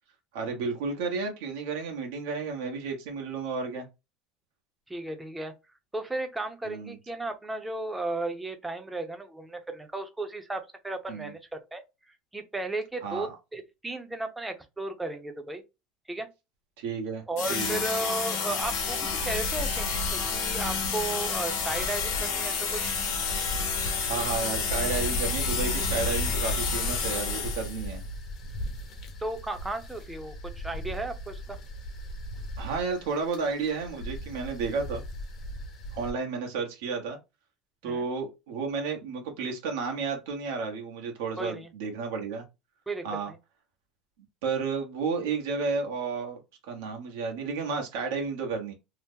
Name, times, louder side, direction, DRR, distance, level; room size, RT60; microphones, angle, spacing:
voice 1, 0.3-3.9 6.6-7.0 11.1-11.3 13.0-13.3 16.8-17.2 17.5-17.8 24.1-28.0 32.6-35.0 35.9-37.2 37.8-42.4 43.0-43.3 44.4-46.4 46.7-48.7, right 4 dB, 85° right, 0.9 m, -32 dB
voice 2, 4.9-5.5 5.9-11.8 12.3-15.6 16.1-16.3 17.3-23.0 29.2-31.6 37.8-38.1 41.4-41.7 42.9-43.4, right 2 dB, 10° right, 0.6 m, -35 dB
sound 1, 17.4-27.9, left 6 dB, 85° left, 0.9 m, -30 dB
sound 2, 18.6-36.1, equal, 40° left, 0.8 m, -36 dB
2.8 x 2.0 x 3.5 m
cardioid pair, 140°, 0 cm